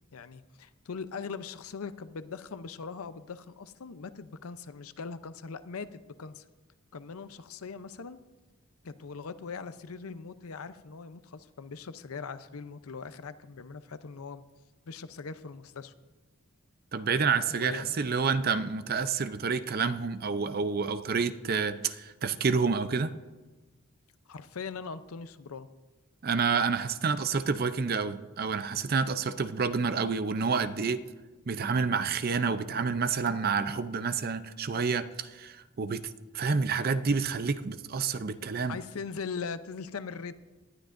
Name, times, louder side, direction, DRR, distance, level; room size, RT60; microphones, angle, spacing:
voice 1, 0.1-6.4 6.9-8.2 8.8-14.4 14.9-15.9 17.6-17.9 24.3-25.7 38.4-40.3, left 5 dB, 90° left, 13 dB, 0.6 m, -41 dB
voice 2, 16.9-23.1 26.2-31.0 31.5-36.0 36.3-38.8, right 5 dB, 45° right, 11 dB, 0.5 m, -29 dB
19.0 x 11.5 x 2.6 m, 1.2 s
head